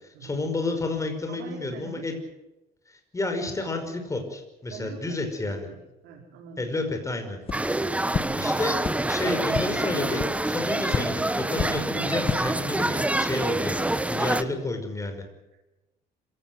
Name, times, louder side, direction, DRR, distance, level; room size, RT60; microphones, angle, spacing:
voice 1, 0.0-2.1 2.9-5.7 6.6-7.4 8.0-8.8 9.1-13.8 14.1-15.2, left 2 dB, 20° left, 6 dB, 5.5 m, -30 dB
voice 2, 1.3-2.1 4.7-6.7 14.2-14.5 15.5-15.6, right 6 dB, 90° right, -1 dB, 4.6 m, -43 dB
sound 1, 7.4-7.6 8.1-8.2 8.8-8.9 9.5-9.6 10.2-10.3 10.9-11.0 11.5-11.7 12.1-12.4, left 6 dB, 35° left, 1.7 m, -27 dB
sound 2, 7.5-14.4, right 1 dB, 5° right, 1.1 m, -26 dB
26.5 x 17.0 x 8.0 m, 1.0 s
cardioid pair, 110°, 17 cm